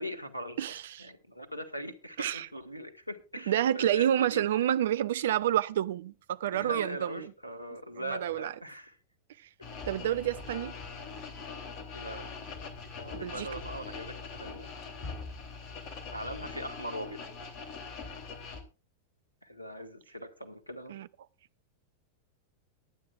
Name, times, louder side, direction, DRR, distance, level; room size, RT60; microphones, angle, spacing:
voice 1, 0.0-4.7 6.5-9.0 9.6-9.7 11.0-11.2 11.9-12.3 13.0-14.7 16.1-17.2 19.4-21.0, equal, 90° left, 1.7 m, -41 dB
voice 2, 0.6-1.1 2.2-2.5 3.5-7.1 8.1-8.5 9.9-10.7 13.1-13.5 20.9-21.1, right 11 dB, 60° right, 0.6 m, -29 dB
sound 1, 9.6-18.6, left 4 dB, 40° left, 3.1 m, -42 dB
22.5 x 9.5 x 2.5 m
figure-of-eight pair, 90°, 0 cm